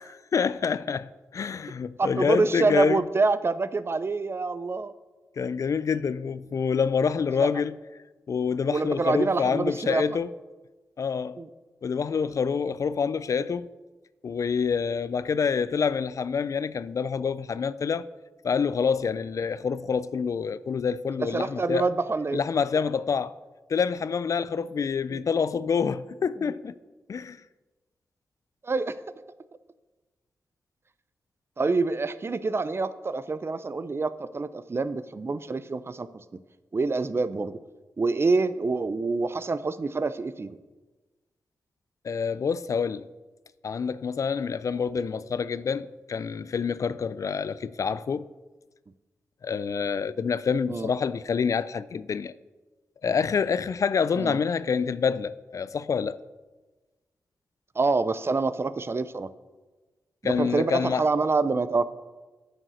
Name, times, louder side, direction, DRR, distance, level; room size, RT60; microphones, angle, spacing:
voice 1, 0.3-3.0 5.4-7.8 8.3-10.3 11.0-11.4 11.8-13.7 14.2-18.1 18.4-21.9 22.3-23.3 23.7-26.7 27.1-27.4 42.0-43.1 43.6-48.3 49.4-52.3 53.0-56.2 60.2-61.0, left 6 dB, 60° left, 0.4 m, -27 dB
voice 2, 2.0-4.9 7.4-7.5 8.7-10.0 11.4-11.5 21.3-22.4 25.1-25.2 26.4-26.5 28.6-28.9 31.6-36.2 36.7-37.6 38.0-40.6 50.7-50.9 54.2-54.4 57.8-59.3 60.2-61.8, right 3 dB, 40° right, 0.6 m, -26 dB
8.9 x 6.5 x 6.4 m
cardioid pair, 50°, 6 cm